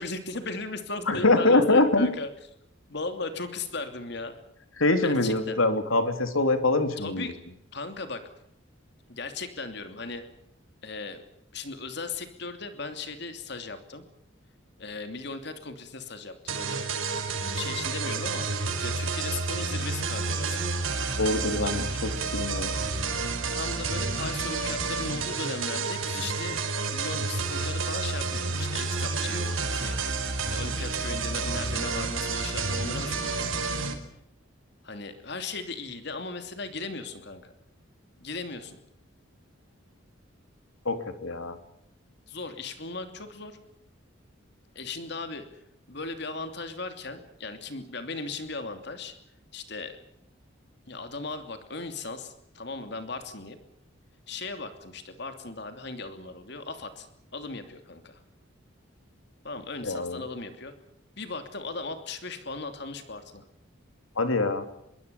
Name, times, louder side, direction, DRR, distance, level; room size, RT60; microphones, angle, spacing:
voice 1, 0.0-2.3 2.9-4.3 5.0-5.6 7.0-7.4 7.7-8.2 9.1-10.2 10.8-11.2 11.5-14.0 14.8-16.9 17.5-18.5 18.8-20.7 23.5-26.6 26.9-30.0 30.5-33.4 34.8-37.5 38.2-38.8 42.3-43.6 44.7-45.6 45.9-49.1 49.5-50.0 50.9-53.6 54.3-57.1 57.3-58.2 59.4-60.7 61.2-63.4, left 3 dB, 55° left, 8 dB, 2.9 m, -37 dB
voice 2, 1.1-2.1 4.8-7.3 21.2-22.7 40.8-41.6 59.8-60.2 64.2-64.7, left 2 dB, 85° left, 8 dB, 3.5 m, -24 dB
sound 1, 16.5-33.9, right 4 dB, 90° right, 5.0 m, -30 dB
25.0 x 23.0 x 7.0 m, 0.78 s
head